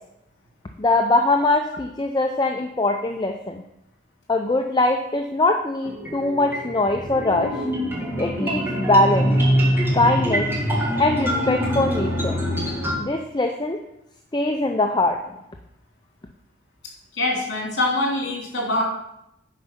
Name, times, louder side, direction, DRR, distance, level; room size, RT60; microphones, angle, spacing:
voice 1, 0.8-3.6 4.3-7.6 8.2-9.3 9.9-10.5 11.0-12.4 13.0-13.8 14.3-15.2, left 2 dB, 20° left, 4 dB, 0.5 m, -22 dB
sound 1, 5.8-13.0, equal, 10° right, 1.9 m, -24 dB
voice 2, 17.1-18.8, left 2 dB, 65° left, -2 dB, 3.1 m, -24 dB
9.2 x 5.3 x 5.9 m, 0.83 s
head